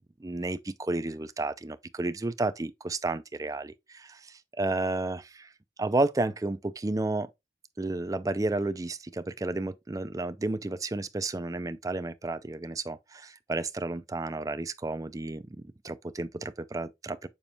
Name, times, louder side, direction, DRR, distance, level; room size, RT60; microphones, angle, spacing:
voice 1, 0.2-5.5 5.8-7.3 7.8-15.4 15.8-17.3, right 2 dB, 20° right, 0.4 m, -32 dB
7.0 x 5.2 x 2.8 m
head